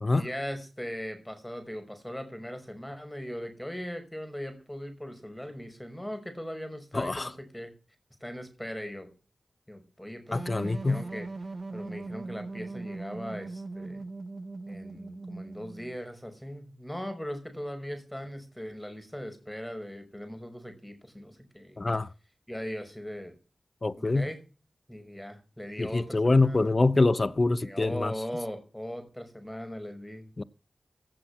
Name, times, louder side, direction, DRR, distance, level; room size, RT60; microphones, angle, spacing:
voice 1, 0.1-7.7 8.2-9.1 9.7-11.3 11.7-14.0 14.7-21.9 22.5-23.3 23.9-24.4 24.9-26.7 27.6-30.3, equal, 10° left, 5.6 m, -39 dB
voice 2, 6.9-7.3 10.3-11.0 21.8-22.1 23.8-24.3 25.8-28.1 30.4-30.5, left 3 dB, 45° left, 0.7 m, -25 dB
sound 1, 10.3-15.9, right 3 dB, 55° right, 0.9 m, -39 dB
16.5 x 7.7 x 6.0 m
cardioid pair, 40°, 0 cm